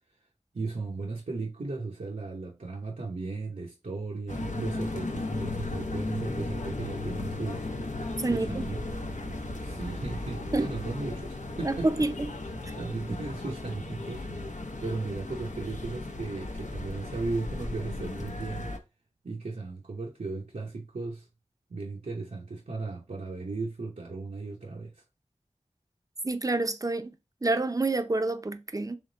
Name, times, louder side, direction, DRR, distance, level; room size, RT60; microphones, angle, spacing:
voice 1, 0.5-7.7 8.3-8.8 9.6-12.3 12.7-14.2 14.8-18.7 19.2-21.3 21.7-25.0, right 3 dB, 85° right, 0.8 m, -36 dB
sound 1, 4.3-18.8, left 2 dB, 75° left, 0.7 m, -36 dB
voice 2, 8.2-8.6 10.5-10.7 11.6-12.4 26.2-27.1 27.4-29.0, right 2 dB, 30° right, 0.5 m, -28 dB
3.6 x 3.2 x 3.8 m
wide cardioid pair, 45°, 12 cm